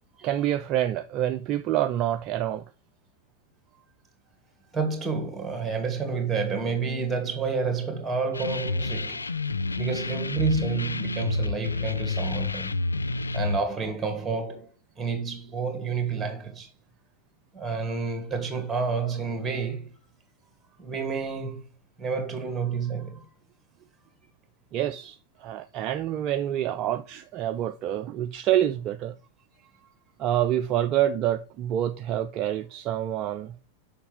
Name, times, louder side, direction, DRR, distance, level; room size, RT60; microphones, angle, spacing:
voice 1, 0.2-2.6 24.7-29.1 30.2-33.5, right 12 dB, 35° right, 0.4 m, -27 dB
voice 2, 4.7-9.3 9.8-12.8 13.3-14.7 15.0-16.7 17.5-19.9 20.8-21.6 22.0-23.2, right 5 dB, 10° right, 2.1 m, -29 dB
sound 1, 8.3-13.6, left 3 dB, 80° left, 0.3 m, -29 dB
7.0 x 5.6 x 3.4 m
figure-of-eight pair, 90°, 0 cm